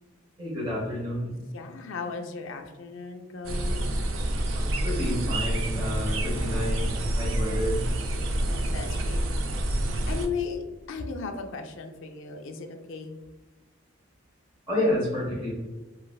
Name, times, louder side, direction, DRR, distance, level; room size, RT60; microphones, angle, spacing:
voice 1, 0.4-1.4 4.5-7.8 14.7-15.5, left 1 dB, 20° right, -7 dB, 0.9 m, -30 dB
voice 2, 1.5-3.9 8.4-9.2 10.1-13.2, left 5 dB, 65° left, 4 dB, 0.4 m, -36 dB
sound 1, 3.4-10.3, right 1 dB, 70° right, 0.4 m, -28 dB
3.1 x 2.5 x 2.3 m, 1.2 s
head